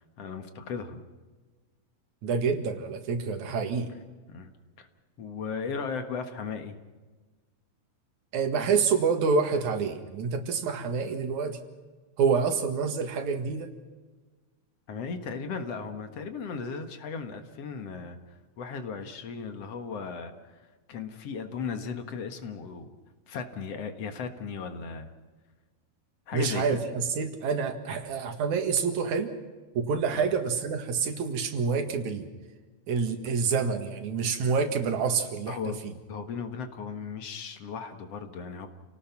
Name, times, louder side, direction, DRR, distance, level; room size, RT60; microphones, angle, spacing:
voice 1, 0.2-1.0 4.3-4.5 4.8-4.9 5.2-6.8 14.9-18.2 18.6-20.6 20.9-22.9 23.3-25.1 26.3-26.6 30.1-30.3 35.5-35.8 36.1-38.7, left 5 dB, 60° left, 7 dB, 2.5 m, -36 dB
voice 2, 2.2-3.9 8.3-11.6 12.2-13.7 26.3-29.3 29.7-32.3 32.9-35.9, right 5 dB, 85° right, 7 dB, 3.2 m, -27 dB
29.0 x 18.5 x 6.0 m, 1.3 s
omnidirectional pair, 3.3 m